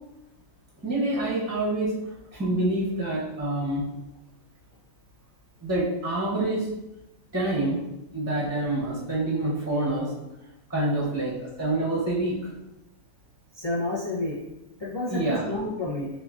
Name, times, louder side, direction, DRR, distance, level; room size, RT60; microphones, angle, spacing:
voice 1, 0.8-1.9 2.3-3.8 5.6-6.7 7.3-7.8 8.1-10.1 10.7-12.5 15.1-15.5, right 2 dB, 15° right, -5 dB, 0.8 m, -27 dB
voice 2, 13.6-14.3 14.8-16.1, left 2 dB, 30° left, -5 dB, 0.5 m, -30 dB
6.9 x 2.6 x 2.5 m, 0.92 s
omnidirectional pair, 1.6 m